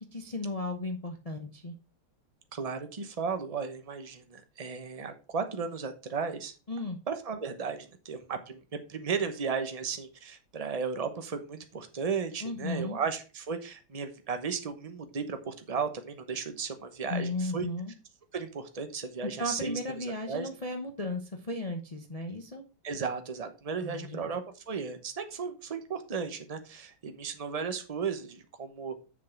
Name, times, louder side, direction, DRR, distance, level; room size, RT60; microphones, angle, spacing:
voice 1, 0.1-1.7 6.7-7.0 12.4-13.0 17.1-17.9 19.2-22.6 23.8-24.3, left 2 dB, 45° left, 4 dB, 0.4 m, -35 dB
voice 2, 2.5-6.5 7.1-17.7 18.3-20.5 22.8-29.0, right 5 dB, 45° right, 7 dB, 0.5 m, -35 dB
7.4 x 6.1 x 4.5 m, 0.32 s
omnidirectional pair, 2.3 m